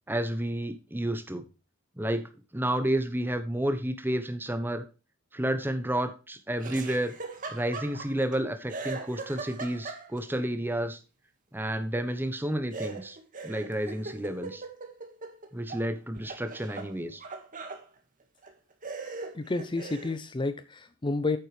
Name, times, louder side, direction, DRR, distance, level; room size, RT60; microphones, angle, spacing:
voice 1, 0.1-1.4 2.0-4.8 5.3-7.1 7.5-11.0 11.5-13.2 13.4-14.6 15.5-17.2, right 1 dB, 10° right, 1.0 m, -31 dB
Laughter, 6.6-8.4 8.7-10.4 12.7-15.8 16.2-17.8 18.4-18.5 18.8-20.2, right 3 dB, 40° right, 1.7 m, -40 dB
voice 2, 19.3-21.4, left 3 dB, 25° left, 0.5 m, -30 dB
9.1 x 7.6 x 3.3 m
head